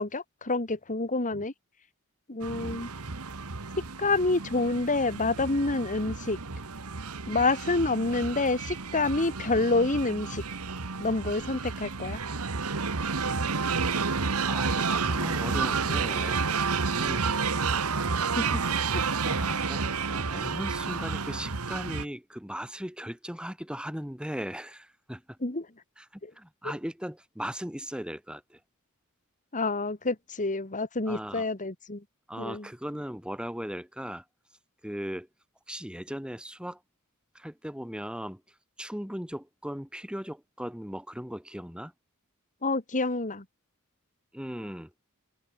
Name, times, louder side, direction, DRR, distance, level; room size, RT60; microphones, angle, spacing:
voice 1, 0.0-1.5 2.3-2.9 4.0-6.4 7.3-10.4 11.0-12.2 18.4-18.6 18.9-19.0 25.4-25.7 26.2-26.3 29.5-32.0 32.4-32.7 42.6-43.5, left 3 dB, 35° left, 2.0 m, -28 dB
sound 1, 2.4-22.1, right 4 dB, 75° right, 1.5 m, -30 dB
voice 2, 2.5-2.8 14.4-16.5 16.9-17.4 19.2-25.4 26.0-28.6 31.1-31.4 32.3-34.2 34.8-35.3 35.7-36.8 37.3-38.4 38.8-41.9 44.3-44.9, equal, 5° right, 2.9 m, -38 dB
open air
head